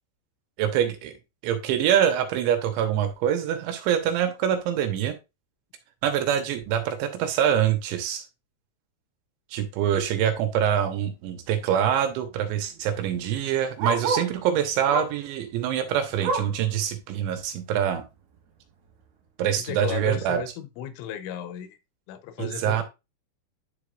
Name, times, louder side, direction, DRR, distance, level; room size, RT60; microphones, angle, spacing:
voice 1, 0.6-1.1 1.4-5.2 6.0-8.2 9.5-18.0 19.4-20.4 22.4-22.8, right 9 dB, 85° right, 3.3 m, -25 dB
Bark, 10.7-10.9 11.3-11.4 11.5-14.4 14.9-15.3 15.7-16.7 17.1-17.2 17.6-17.7 18.4-18.5, right 4 dB, 65° right, 3.1 m, -30 dB
voice 2, 19.6-21.8 22.1-22.8, left 10 dB, 85° left, 3.3 m, -35 dB
10.5 x 5.0 x 2.4 m
omnidirectional pair, 5.4 m